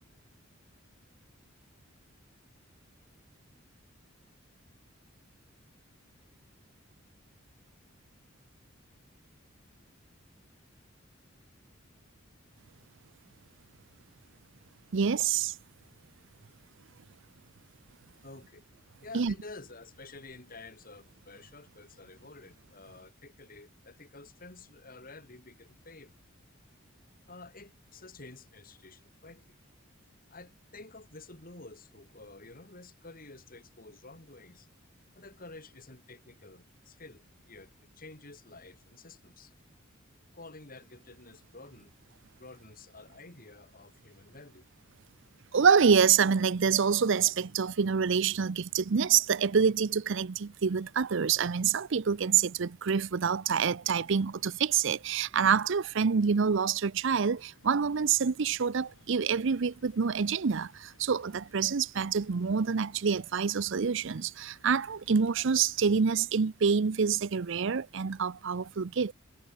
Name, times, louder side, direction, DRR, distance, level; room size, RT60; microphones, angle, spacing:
voice 1, 14.9-15.5 19.1-19.3 45.5-69.1, right 6 dB, 65° right, 0.6 m, -27 dB
voice 2, 18.2-18.6 19.0-26.2 27.3-29.6 30.3-34.7 35.1-39.5 40.3-41.9 42.3-44.7, left 3 dB, 45° left, 4.5 m, -50 dB
sound 1, 57.4-66.1, left 2 dB, 70° left, 5.0 m, -62 dB
head